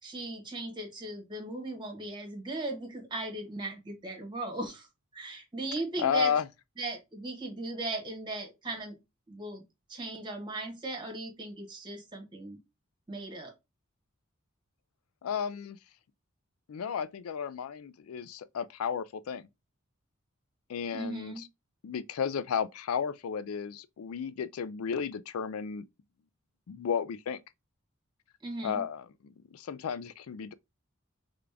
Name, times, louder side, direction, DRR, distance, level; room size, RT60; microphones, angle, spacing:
voice 1, 0.0-4.9 5.1-6.3 6.8-8.9 9.3-9.6 9.9-12.6 13.1-13.5 20.9-21.4 28.4-28.8, right 2 dB, 20° right, 1.6 m, -37 dB
voice 2, 6.0-6.5 15.2-15.8 16.7-19.5 20.7-21.5 21.8-25.8 26.7-27.4 28.6-30.5, left 7 dB, 85° left, 0.4 m, -33 dB
3.7 x 3.4 x 3.4 m
head